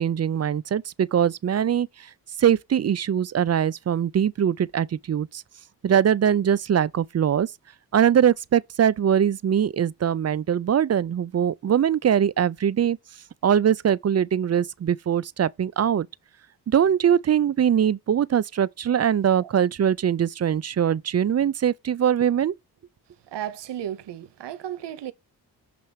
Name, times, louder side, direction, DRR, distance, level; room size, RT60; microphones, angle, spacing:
voice 1, 0.0-2.1 2.4-5.4 5.8-7.5 7.9-13.0 13.4-16.1 16.7-22.5, right 9 dB, 40° right, 0.5 m, -22 dB
voice 2, 23.2-25.1, right 11 dB, 80° right, 0.8 m, -34 dB
6.7 x 3.0 x 5.6 m
cardioid pair, 55°, 42 cm